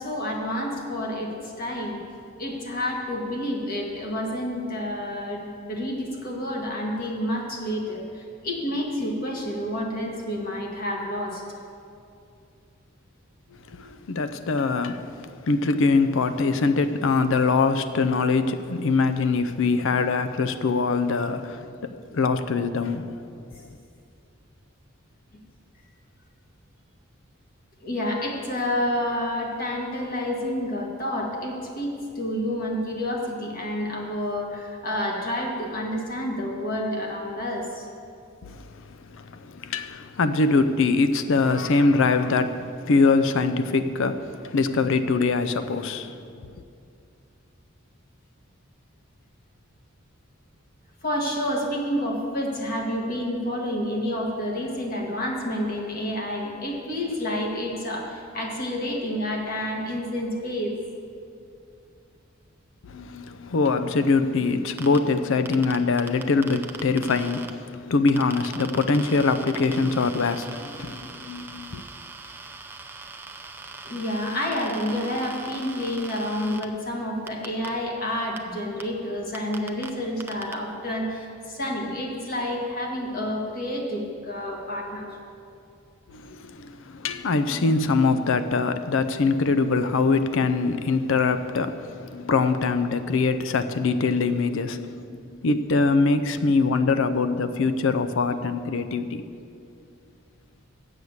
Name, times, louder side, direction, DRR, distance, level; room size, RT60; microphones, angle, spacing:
voice 1, 0.0-2.0 2.4-11.4 27.8-37.9 51.0-60.7 73.8-85.2, left 1 dB, 45° left, 1.6 m, -29 dB
voice 2, 13.7-23.3 38.4-46.2 62.8-71.8 86.1-99.3, left 4 dB, 70° left, 0.5 m, -23 dB
sound 1, 64.8-65.0 65.5-67.5 68.1-76.6 77.3-77.7 78.4-78.5 78.8-78.9 79.3-79.9 80.2-80.5, right 3 dB, 10° right, 0.5 m, -40 dB
8.0 x 7.8 x 7.2 m
head